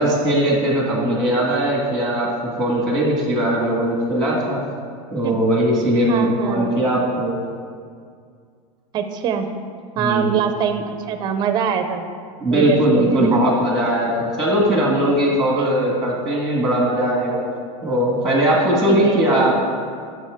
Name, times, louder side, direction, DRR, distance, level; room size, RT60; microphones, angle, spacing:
voice 1, 0.0-2.3 2.6-4.6 5.1-7.3 10.0-10.3 12.4-17.5 17.8-19.5, right 1 dB, ahead, -2 dB, 1.5 m, -19 dB
voice 2, 6.1-6.8 8.9-9.5 10.0-12.1 12.5-13.5 14.5-14.7 15.3-15.7 18.9-19.5, right 7 dB, 25° right, 7 dB, 0.6 m, -24 dB
14.0 x 6.6 x 3.6 m, 2.2 s
supercardioid pair, 170°, 18 cm